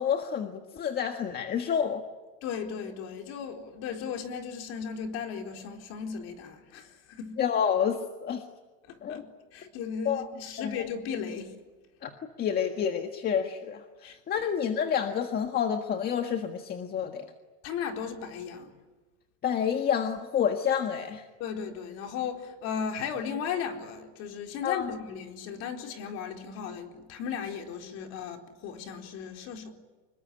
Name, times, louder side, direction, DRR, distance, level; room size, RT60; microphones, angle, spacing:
voice 1, 0.0-2.0 7.4-8.4 9.0-9.2 10.1-10.3 10.6-10.8 12.0-12.1 12.4-17.3 19.4-21.3 24.6-24.9, left 8 dB, 25° left, 1.6 m, -29 dB
voice 2, 2.4-7.4 8.9-9.3 9.5-11.5 14.0-14.2 17.6-18.7 21.4-29.7, left 7 dB, 40° left, 4.2 m, -36 dB
26.5 x 22.0 x 9.9 m
supercardioid pair, 155°, 36 cm